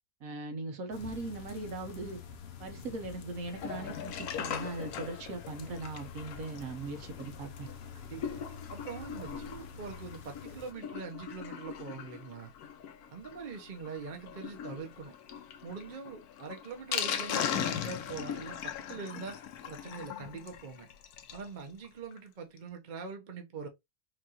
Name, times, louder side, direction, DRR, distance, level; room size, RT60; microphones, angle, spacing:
voice 1, 0.2-2.2 2.6-7.7, right 3 dB, 65° right, 1.2 m, -39 dB
sound 1, 0.9-10.7, left 6 dB, 60° left, 0.7 m, -48 dB
Sink (filling or washing), 3.5-21.5 21.8-21.9 22.1-22.2 22.6-22.7, left 8 dB, 75° left, 1.1 m, -40 dB
voice 2, 8.1-8.4 8.7-12.5 13.1-15.2 15.6-19.4 19.7-20.9 21.3-23.7, right 5 dB, 40° right, 0.8 m, -43 dB
4.7 x 2.5 x 2.8 m
omnidirectional pair, 1.7 m